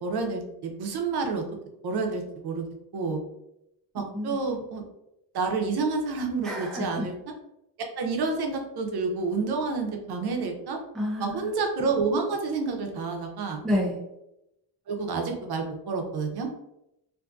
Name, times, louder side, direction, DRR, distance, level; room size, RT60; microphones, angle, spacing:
voice 1, 0.0-1.4 1.8-2.6 2.9-3.2 3.9-4.8 5.3-7.1 8.0-10.8 11.2-13.6 14.9-16.5, right 4 dB, 65° right, 2 dB, 0.6 m, -29 dB
voice 2, 6.4-7.0 10.9-11.5 13.6-14.0, left 1 dB, ahead, -3 dB, 0.3 m, -29 dB
2.6 x 2.5 x 2.3 m, 0.85 s
wide cardioid pair, 155°, 43 cm